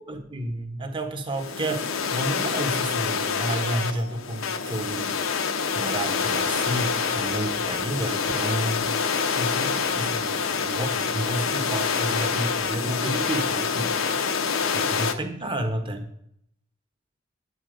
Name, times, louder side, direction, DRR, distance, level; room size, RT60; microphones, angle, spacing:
voice 1, 0.1-5.2 5.7-8.9 9.4-13.9 14.7-16.0, right 1 dB, 25° right, 5 dB, 1.3 m, -31 dB
sound 1, 1.3-15.1, left 6 dB, 85° left, 0.9 m, -26 dB
9.7 x 8.5 x 5.1 m, 0.72 s
head